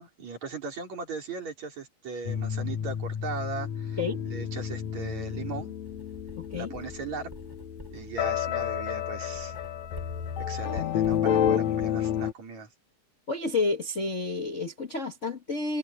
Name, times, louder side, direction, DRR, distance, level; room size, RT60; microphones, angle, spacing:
voice 1, 0.0-5.7 6.5-7.3 7.9-9.6 10.4-12.7, right 4 dB, 70° right, 5.5 m, -38 dB
sound 1, 2.3-12.3, left 9 dB, 70° left, 2.4 m, -30 dB
Writing, 5.8-11.8, equal, 5° right, 6.4 m, -51 dB
voice 2, 6.4-6.7 13.3-15.8, left 3 dB, 35° left, 1.2 m, -30 dB
omnidirectional pair, 3.3 m